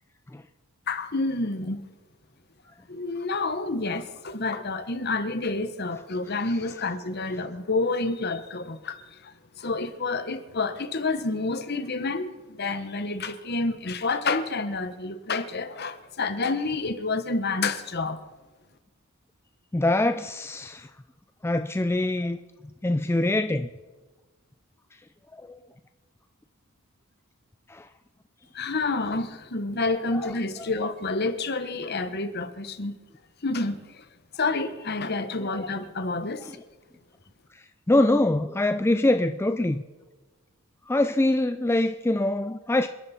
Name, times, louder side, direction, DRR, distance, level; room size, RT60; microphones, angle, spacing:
voice 1, 0.9-1.9 2.9-18.2 28.5-33.0 33.4-34.1 34.3-36.5, left 3 dB, 50° left, 1.2 m, -29 dB
voice 2, 19.7-20.9 21.4-22.4 22.8-23.7 25.3-25.6 27.7-27.9 30.1-30.3 35.4-35.5 37.9-39.8 40.9-42.9, left 1 dB, 10° left, 0.4 m, -24 dB
28.0 x 11.0 x 4.3 m
head